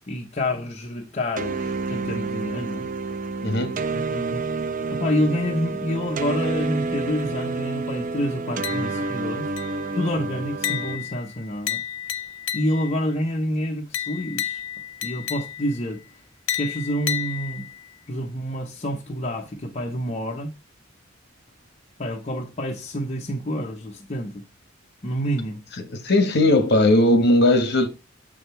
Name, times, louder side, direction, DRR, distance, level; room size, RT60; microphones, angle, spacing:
voice 1, 0.1-2.9 3.9-4.4 4.9-9.6 9.9-11.8 12.5-14.6 15.0-16.0 16.6-17.7 18.1-20.5 22.0-24.4 25.0-25.6, equal, 35° left, 0.7 m, -28 dB
sound 1, 1.4-11.0, right 3 dB, 40° right, 0.5 m, -29 dB
voice 2, 3.4-3.8 26.0-27.9, left 1 dB, 55° left, 1.3 m, -18 dB
sound 2, 8.6-9.2 9.6-10.0 10.6-13.0 13.9-15.8 16.5-17.9, left 10 dB, 80° left, 0.7 m, -31 dB
6.8 x 5.0 x 4.4 m
head